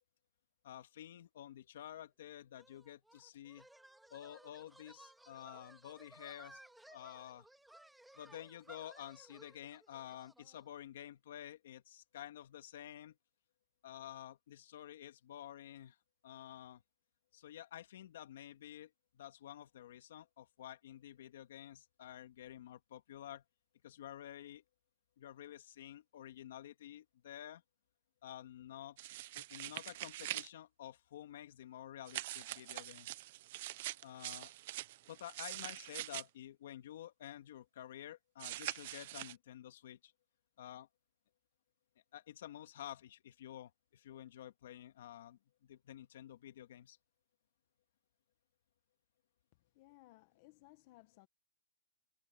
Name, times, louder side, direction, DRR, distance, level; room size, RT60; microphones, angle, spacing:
voice 1, 0.6-3.7 4.1-6.6 6.9-7.5 8.2-13.2 13.8-16.0 16.2-16.8 17.3-23.4 23.8-24.6 25.2-27.6 28.2-29.0 29.3-33.1 34.0-34.5 35.1-40.1 40.6-40.9 42.1-47.0, left 11 dB, 55° left, 2.1 m, -51 dB
sound 1, 2.6-10.7, right 1 dB, ahead, 1.9 m, -60 dB
sound 2, 29.0-30.5 32.1-36.2 38.4-39.3, right 16 dB, 40° right, 0.8 m, -44 dB
voice 2, 49.8-51.3, left 19 dB, 35° left, 1.3 m, -61 dB
hypercardioid pair, 165°, 0 cm